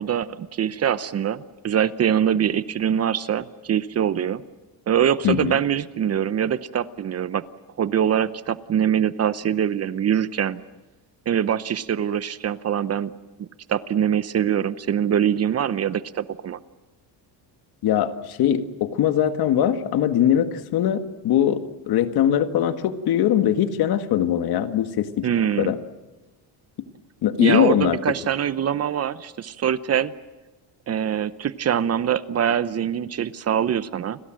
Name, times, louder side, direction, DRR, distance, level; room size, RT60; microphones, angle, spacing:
voice 1, 0.0-4.4 4.9-7.4 7.8-10.6 11.3-13.1 13.4-16.6 25.2-25.7 27.4-30.1 30.9-34.2, right 9 dB, 35° right, 15 dB, 0.8 m, -23 dB
voice 2, 5.2-5.6 17.8-25.8 27.2-28.0, left 10 dB, 60° left, 8 dB, 1.9 m, -21 dB
29.5 x 22.0 x 7.6 m, 1.1 s
cardioid pair, 135°, 41 cm